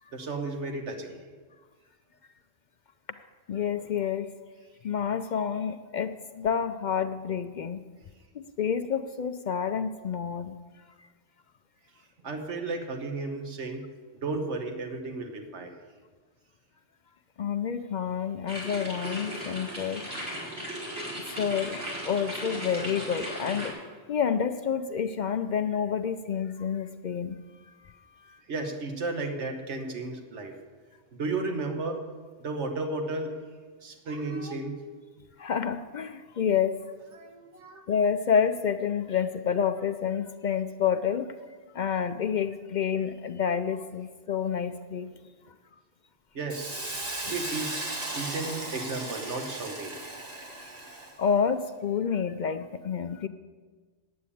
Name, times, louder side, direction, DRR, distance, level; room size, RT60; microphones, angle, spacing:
voice 1, 0.1-1.2 12.2-13.8 14.1-15.7 28.5-30.6 31.1-32.0 32.4-33.4 33.8-34.8 37.1-37.8 46.3-47.8 48.1-49.9, right 3 dB, 80° right, 4 dB, 1.5 m, -34 dB
voice 2, 3.5-4.3 4.8-7.8 8.3-10.6 17.4-20.0 21.4-21.8 22.0-23.7 24.1-27.4 28.3-28.4 35.4-36.7 37.9-41.3 41.7-45.1 51.2-53.3, left 7 dB, 60° left, 9 dB, 0.5 m, -28 dB
sound 1, 18.5-23.7, equal, 60° right, 4.0 m, -36 dB
Hiss, 46.5-51.2, right 2 dB, 35° right, 1.4 m, -36 dB
9.4 x 8.6 x 8.5 m, 1.4 s
omnidirectional pair, 1.2 m